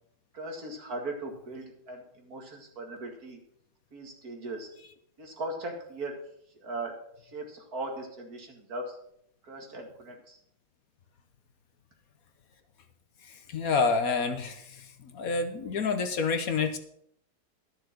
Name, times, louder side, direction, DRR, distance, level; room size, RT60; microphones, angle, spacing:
voice 1, 0.3-3.4 3.9-4.7 5.2-6.2 6.5-9.0 9.4-10.4, right 2 dB, 60° right, 2 dB, 2.5 m, -39 dB
voice 2, 13.5-14.9 15.1-16.8, left 4 dB, 60° left, 8 dB, 1.3 m, -28 dB
12.5 x 6.7 x 6.1 m, 0.71 s
omnidirectional pair, 1.8 m